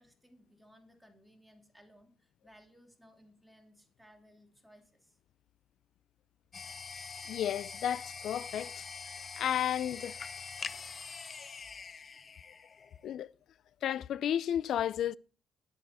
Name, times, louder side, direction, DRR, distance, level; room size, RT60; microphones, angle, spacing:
voice 1, 0.0-5.2, equal, 5° right, 2.8 m, -61 dB
sound 1, 6.5-13.1, left 5 dB, 40° left, 0.7 m, -44 dB
voice 2, 7.3-8.9 9.4-10.2 13.0-13.3 13.8-15.2, left 10 dB, 70° left, 0.4 m, -32 dB
11.5 x 10.5 x 4.2 m
cardioid pair, 90°, 0 cm